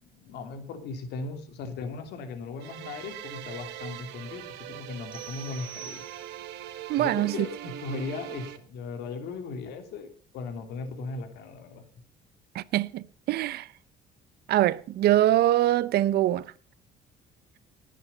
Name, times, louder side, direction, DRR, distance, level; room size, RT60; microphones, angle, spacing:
voice 1, 0.0-6.0 7.0-11.8, left 4 dB, 80° left, 3.2 m, -37 dB
sound 1, 2.6-8.6, right 13 dB, 90° right, 1.5 m, -42 dB
sound 2, 5.1-6.7, right 8 dB, 30° right, 4.3 m, -45 dB
voice 2, 6.9-7.3 12.5-13.7 14.5-16.4, right 14 dB, 70° right, 0.8 m, -23 dB
19.5 x 8.6 x 5.6 m
cardioid pair, 110°, 17 cm